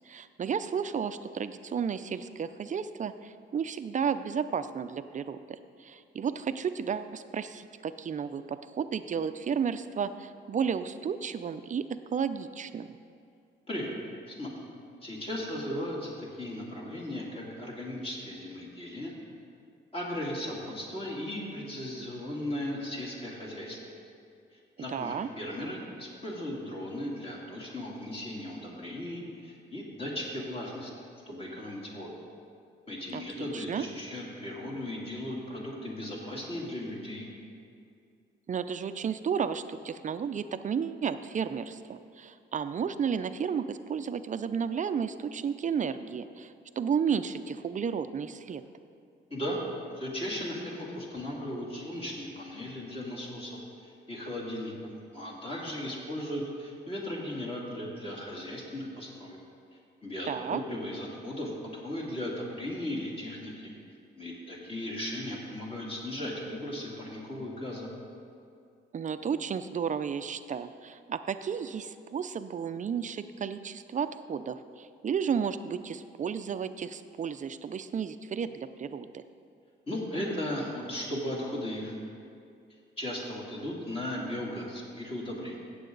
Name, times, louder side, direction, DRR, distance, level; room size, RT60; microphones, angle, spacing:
voice 1, 0.1-11.8 12.1-12.9 24.9-25.3 33.1-33.8 38.5-48.6 60.2-60.6 68.9-79.2, right 7 dB, 40° right, 11 dB, 0.5 m, -33 dB
voice 2, 15.0-19.1 19.9-23.8 24.8-30.9 31.3-32.1 32.9-37.3 49.3-49.6 49.9-54.7 55.1-59.4 60.0-63.7 64.2-67.9 79.9-81.9 83.0-85.6, left 1 dB, 30° left, -4 dB, 3.0 m, -37 dB
16.5 x 7.7 x 4.0 m, 2.4 s
cardioid pair, 90°, 20 cm